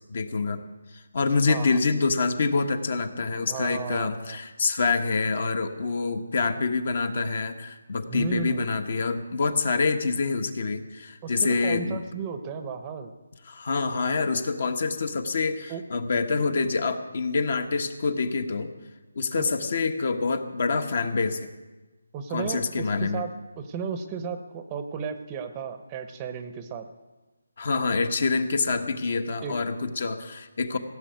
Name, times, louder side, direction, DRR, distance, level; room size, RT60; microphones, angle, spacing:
voice 1, 0.1-0.6 0.9-12.0 13.4-18.7 19.1-21.5 22.3-23.3 27.6-30.8, left 4 dB, 50° left, 8 dB, 1.2 m, -26 dB
voice 2, 1.5-1.8 3.5-4.4 8.1-8.6 11.2-13.1 15.7-15.8 19.4-19.5 22.1-26.9 29.4-29.6, right 6 dB, 15° right, 8 dB, 0.8 m, -34 dB
17.0 x 7.0 x 9.3 m, 1.2 s
hypercardioid pair, 170°, 0 cm